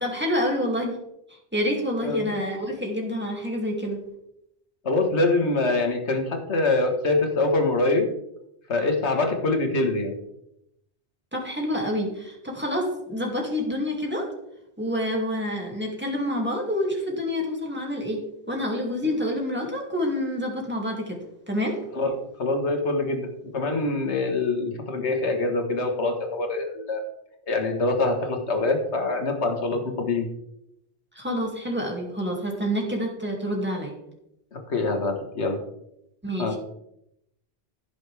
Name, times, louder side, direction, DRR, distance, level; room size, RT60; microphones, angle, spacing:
voice 1, 0.0-1.0 1.5-4.0 11.3-14.3 14.8-21.8 31.1-33.9 36.2-36.6, equal, 10° right, -1 dB, 2.4 m, -28 dB
voice 2, 2.0-2.3 4.8-8.1 8.7-10.1 22.0-27.0 27.5-30.3 34.5-35.6 36.4-36.6, left 2 dB, 90° left, 4 dB, 1.7 m, -24 dB
15.5 x 6.2 x 3.4 m, 0.82 s
omnidirectional pair, 1.1 m